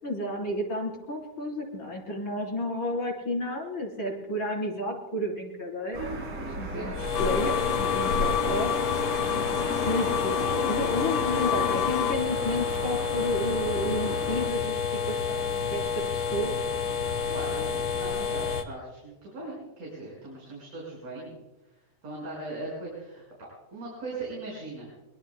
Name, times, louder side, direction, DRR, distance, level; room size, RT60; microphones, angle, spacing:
voice 1, 0.0-6.2 6.6-8.8 9.8-16.6, left 1 dB, 40° left, 0 dB, 4.7 m, -32 dB
sound 1, 5.9-14.5, right 2 dB, 80° right, 5.4 m, -37 dB
voice 2, 6.6-6.9 8.0-8.6 9.2-9.8 17.2-21.4 22.0-24.9, right 2 dB, 60° right, -4 dB, 6.8 m, -39 dB
sound 2, 6.9-18.6, left 6 dB, 55° left, 1.6 m, -29 dB
sound 3, 7.1-12.2, left 9 dB, 85° left, 1.2 m, -29 dB
24.0 x 22.5 x 2.2 m, 1.1 s
omnidirectional pair, 3.5 m